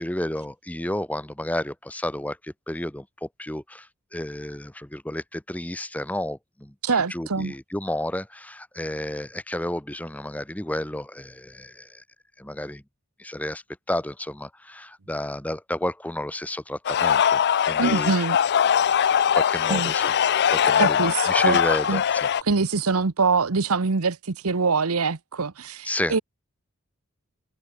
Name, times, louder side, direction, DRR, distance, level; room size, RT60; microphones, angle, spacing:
voice 1, 0.0-12.0 12.4-12.8 13.2-17.4 17.7-18.2 19.3-20.1 20.5-22.3 25.8-26.2, left 1 dB, 5° left, 1.0 m, -31 dB
voice 2, 6.8-7.5 17.8-18.4 19.7-19.9 20.8-21.6 21.9-22.0 22.4-26.2, right 4 dB, 75° right, 1.0 m, -24 dB
sound 1, 16.8-22.4, left 8 dB, 50° left, 0.4 m, -21 dB
head